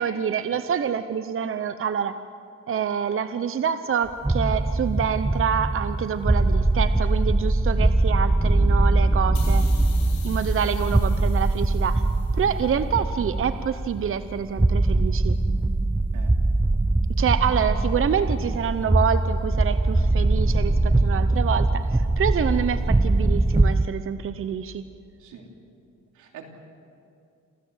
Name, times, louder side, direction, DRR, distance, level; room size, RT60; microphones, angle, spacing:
voice 1, 0.0-2.2 2.7-9.6 10.2-12.0 12.3-15.4 17.2-24.8, right 7 dB, 45° right, 11 dB, 0.8 m, -27 dB
sound 1, 4.1-23.9, right 2 dB, 5° right, 0.4 m, -22 dB
sound 2, 9.3-12.7, left 7 dB, 65° left, 5.4 m, -45 dB
voice 2, 9.4-9.6 9.9-10.0 16.1-16.3 25.2-25.5 26.1-26.4, right 8 dB, 85° right, 2 dB, 3.1 m, -44 dB
27.0 x 15.5 x 8.0 m, 2.5 s
cardioid pair, 90°, 30 cm